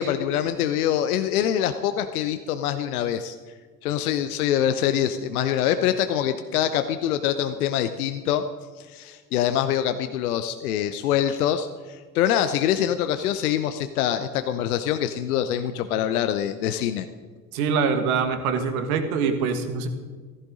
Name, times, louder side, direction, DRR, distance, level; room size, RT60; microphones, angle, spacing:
voice 1, 0.0-3.4 3.8-8.4 8.8-17.1, left 10 dB, 65° left, 9 dB, 0.8 m, -24 dB
voice 2, 17.5-19.9, right 5 dB, 65° right, 7 dB, 1.8 m, -24 dB
15.0 x 14.5 x 3.8 m, 1.5 s
figure-of-eight pair, 65°, 47 cm